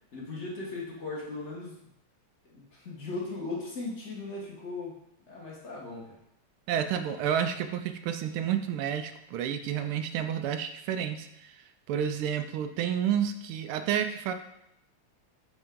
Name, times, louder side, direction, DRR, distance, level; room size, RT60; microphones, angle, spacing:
voice 1, 0.1-1.8 2.4-5.0 5.3-6.2, left 3 dB, 35° left, -4 dB, 1.5 m, -38 dB
voice 2, 6.7-14.3, right 9 dB, 80° right, 9 dB, 1.4 m, -30 dB
7.0 x 4.0 x 3.7 m, 0.80 s
omnidirectional pair, 2.4 m